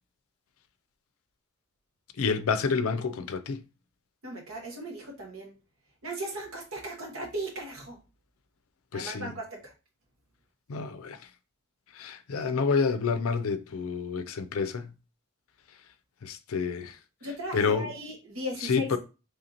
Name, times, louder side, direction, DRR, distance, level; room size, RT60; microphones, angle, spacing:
voice 1, 2.2-3.6 8.9-9.3 10.7-11.2 12.0-14.9 16.2-17.0 17.5-17.9 18.6-19.0, left 5 dB, 75° left, 0.5 m, -28 dB
voice 2, 4.2-5.5 6.0-8.0 8.9-9.7 17.2-19.0, right 1 dB, 70° right, 1.2 m, -37 dB
3.3 x 2.9 x 3.8 m
head